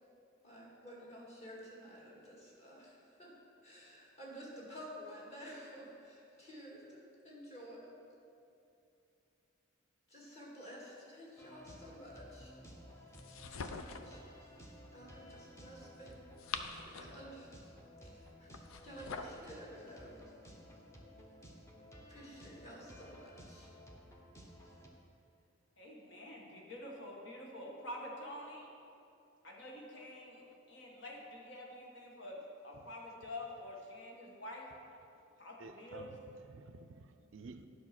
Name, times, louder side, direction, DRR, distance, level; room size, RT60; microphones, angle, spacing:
voice 1, 0.4-3.4 3.6-7.9 10.1-12.6 13.5-14.2 14.9-16.2 16.5-17.7 18.0-18.5 18.8-20.2 22.1-23.7, equal, 30° left, -4 dB, 2.0 m, -52 dB
sound 1, 11.4-24.9, equal, 15° left, 0.8 m, -55 dB
sound 2, 13.1-14.2 16.1-17.3 18.5-19.4, left 5 dB, 85° left, 0.5 m, -44 dB
voice 2, 25.8-28.7 29.4-34.7 35.4-36.1, left 1 dB, 60° left, -2 dB, 1.5 m, -47 dB
voice 3, 35.1-37.7, right 4 dB, 70° right, 9 dB, 0.5 m, -53 dB
9.7 x 5.5 x 5.9 m, 2.6 s
head